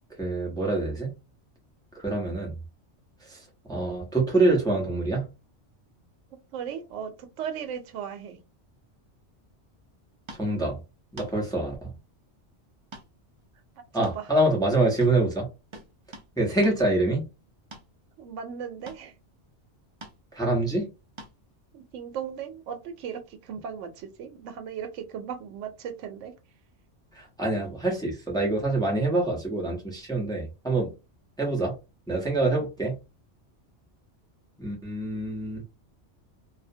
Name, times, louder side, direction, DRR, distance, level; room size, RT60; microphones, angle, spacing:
voice 1, 0.2-1.1 1.9-2.5 3.2-5.3 10.3-10.8 11.1-11.9 13.9-15.5 16.4-17.2 20.3-20.9 27.1-30.9 31.4-31.7 32.1-33.0 34.6-35.6, right 2 dB, 5° left, 0.6 m, -26 dB
voice 2, 6.5-8.4 13.8-14.3 18.2-19.1 21.7-26.3 32.5-32.7, right 8 dB, 85° right, 0.9 m, -37 dB
sound 1, 10.3-10.5 11.2-11.3 12.9-13.1 13.4-13.5 14.0-14.7 15.0-15.2 15.7-16.3 16.6-16.8 17.7-17.9 18.9-19.1 20.0-20.2 21.2-21.4 23.1-23.2, right 2 dB, 55° right, 0.3 m, -45 dB
2.4 x 2.1 x 2.6 m
omnidirectional pair, 1.2 m